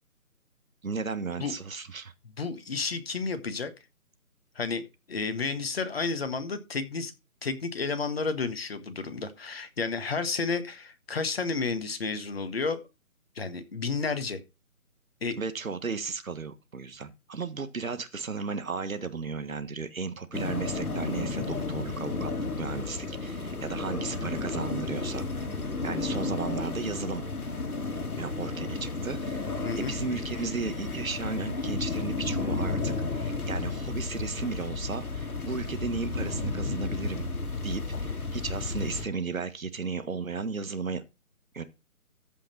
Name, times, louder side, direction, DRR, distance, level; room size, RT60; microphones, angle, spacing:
voice 1, 0.8-2.1 15.4-25.3 25.8-27.2 28.2-37.2 37.6-41.0 41.5-41.6, right 4 dB, 65° right, 1.5 m, -35 dB
voice 2, 2.4-3.7 4.5-7.1 7.4-12.8 13.3-14.4 15.2-15.4 29.6-29.9, left 4 dB, 40° left, 1.4 m, -31 dB
sound 1, 20.3-39.0, left 3 dB, 75° left, 2.3 m, -32 dB
14.0 x 5.6 x 4.3 m
figure-of-eight pair, 160°, 44 cm